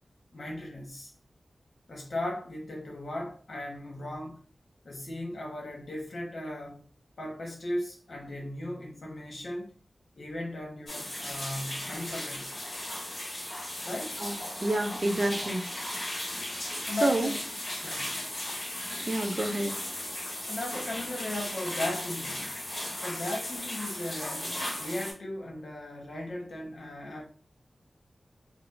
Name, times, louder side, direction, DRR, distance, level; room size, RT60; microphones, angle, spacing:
voice 1, 0.3-1.1 1.9-4.4 4.8-6.8 7.2-9.7 10.2-12.6 13.8-14.2 16.9-17.5 17.8-18.1 20.5-22.5 23.0-27.2, left 1 dB, 65° left, 1.0 m, -37 dB
sound 1, 10.9-25.1, left 1 dB, 45° left, 1.3 m, -36 dB
voice 2, 14.6-15.6 17.0-17.3 19.1-19.7, right 2 dB, 45° right, 0.4 m, -28 dB
4.8 x 2.0 x 2.5 m
wide cardioid pair, 115°, 0 cm